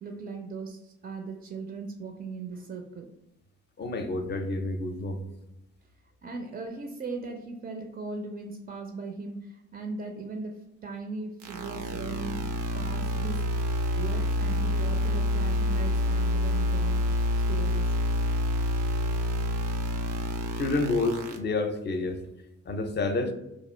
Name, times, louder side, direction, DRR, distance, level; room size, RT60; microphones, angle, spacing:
voice 1, 0.0-3.1 6.2-12.4 12.7-13.4 14.0-17.0 17.5-17.9, right 4 dB, 35° right, 3 dB, 0.5 m, -38 dB
voice 2, 3.8-5.2 20.6-22.2 22.7-23.3, left 3 dB, 35° left, 7 dB, 0.6 m, -29 dB
sound 1, 11.4-21.4, left 1 dB, 85° right, 0.6 m, -27 dB
2.9 x 2.4 x 4.3 m, 0.87 s
cardioid pair, 90°, 30 cm